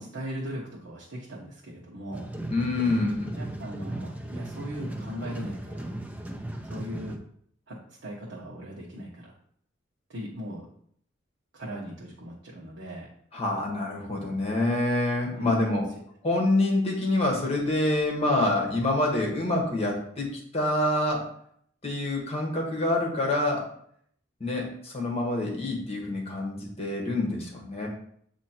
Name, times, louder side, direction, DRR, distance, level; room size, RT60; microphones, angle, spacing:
voice 1, 0.0-2.3 3.4-5.9 6.6-7.2 7.7-9.3 10.1-10.6 11.5-13.1 15.3-15.8, equal, 70° right, -5 dB, 1.1 m, -38 dB
sound 1, 2.1-7.2, right 1 dB, 10° right, 0.5 m, -36 dB
voice 2, 2.5-3.3 13.3-15.8 16.2-21.3 21.8-23.7 24.4-27.9, left 2 dB, 30° left, -1 dB, 1.3 m, -26 dB
7.5 x 2.9 x 4.3 m, 0.66 s
head